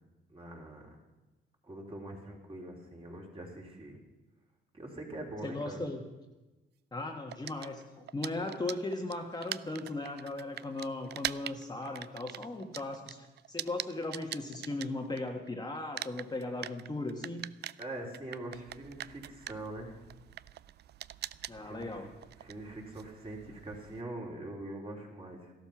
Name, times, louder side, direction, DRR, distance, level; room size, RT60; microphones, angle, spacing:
voice 1, 0.3-0.9 1.6-4.0 4.7-5.8 17.8-20.0 21.6-22.1 22.4-25.5, right 1 dB, 30° right, -1 dB, 3.7 m, -43 dB
voice 2, 5.4-6.0 6.9-17.5 21.5-22.1, left 2 dB, 20° left, 2 dB, 1.4 m, -37 dB
sound 1, 7.3-15.5 15.8-24.0, right 12 dB, 55° right, 0.4 m, -43 dB
14.0 x 12.0 x 6.0 m, 1.1 s
cardioid pair, 90°, 20 cm